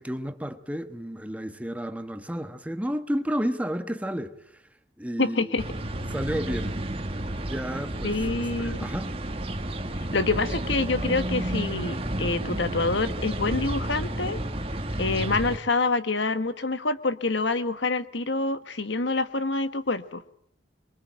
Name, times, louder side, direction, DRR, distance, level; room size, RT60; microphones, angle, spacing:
voice 1, 0.0-4.6 5.0-5.5 6.1-6.7 7.4-9.1, equal, 5° right, 1.2 m, -32 dB
voice 2, 5.2-5.6 8.0-8.9 10.1-14.4 15.0-20.2, left 3 dB, 65° left, 1.4 m, -26 dB
sound 1, 5.6-15.6, right 1 dB, 30° right, 1.8 m, -31 dB
26.5 x 23.0 x 9.0 m
head